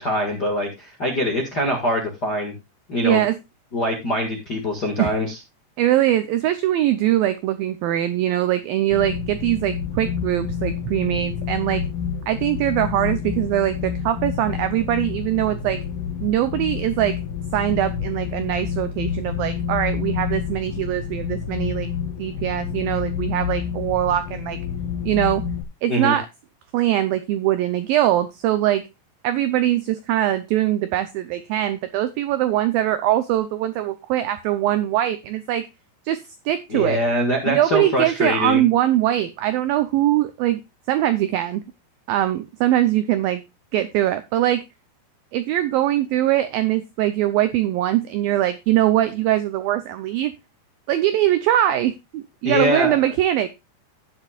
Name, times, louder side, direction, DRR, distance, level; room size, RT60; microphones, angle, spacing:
voice 1, 0.0-2.5 2.9-3.2 3.7-5.4 25.9-26.2 36.7-38.6 52.4-53.0, left 1 dB, 50° left, 1 dB, 1.2 m, -23 dB
voice 2, 3.0-3.4 5.0-5.1 5.8-11.8 12.3-15.8 16.2-17.2 17.5-21.9 22.2-24.6 25.0-25.4 25.8-26.3 26.7-28.9 29.2-35.7 36.1-37.0 37.5-40.6 40.9-41.6 42.1-43.4 43.7-44.6 45.3-50.3 50.9-53.5, right 13 dB, 90° right, 11 dB, 2.0 m, -22 dB
sound 1, 8.9-25.6, left 7 dB, 70° left, 1.9 m, -28 dB
12.5 x 9.8 x 2.4 m, 0.23 s
omnidirectional pair, 5.0 m